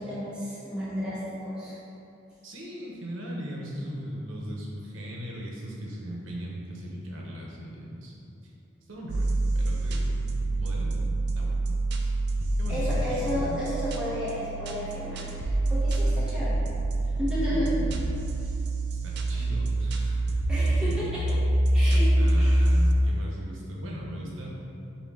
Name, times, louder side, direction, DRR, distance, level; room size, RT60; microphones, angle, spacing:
voice 1, 0.0-1.8 12.7-16.5 17.2-17.9 18.4-18.5 19.3-19.5 20.5-21.2 21.7-22.0 22.4-22.5, equal, 5° right, -11 dB, 0.7 m, -32 dB
voice 2, 2.4-8.1 8.4-8.5 8.9-9.3 9.5-10.0 10.6-11.0 11.3-11.6 12.0-12.2 12.6-13.6 16.0-16.2 17.5-17.8 18.9-20.2 20.6-21.1 21.9-24.5, equal, 85° right, -3 dB, 0.7 m, -38 dB
sound 1, 9.1-22.9, right 1 dB, 55° right, 0.3 m, -26 dB
5.1 x 2.2 x 3.5 m, 2.7 s
head